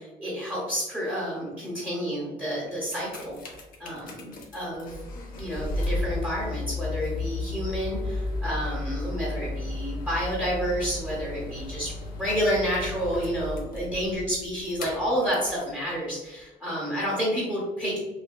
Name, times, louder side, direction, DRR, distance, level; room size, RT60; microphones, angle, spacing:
voice 1, 0.2-3.4 3.8-4.9 5.4-11.9 12.2-18.0, equal, 10° right, -7 dB, 0.9 m, -29 dB
sound 1, 2.7-15.7 16.4-16.5, left 2 dB, 55° left, 0.6 m, -34 dB
3.3 x 2.2 x 2.2 m, 1.1 s
cardioid pair, 110°, 17 cm